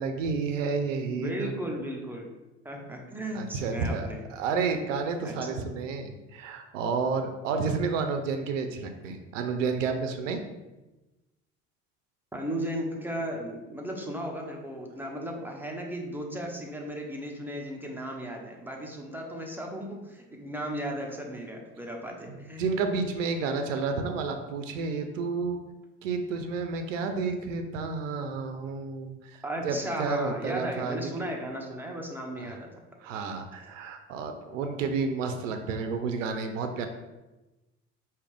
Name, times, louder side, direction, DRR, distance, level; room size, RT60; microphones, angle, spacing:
voice 1, 0.0-1.6 3.3-10.4 22.6-25.6 26.0-31.0 32.4-32.6 33.0-36.9, right 4 dB, 85° right, 6 dB, 0.5 m, -31 dB
voice 2, 1.1-2.3 2.6-4.2 5.2-5.7 12.3-22.6 29.4-32.7, right 1 dB, 5° right, 0 dB, 1.0 m, -35 dB
4.8 x 2.8 x 3.4 m, 1.1 s
hypercardioid pair, 65°, 37 cm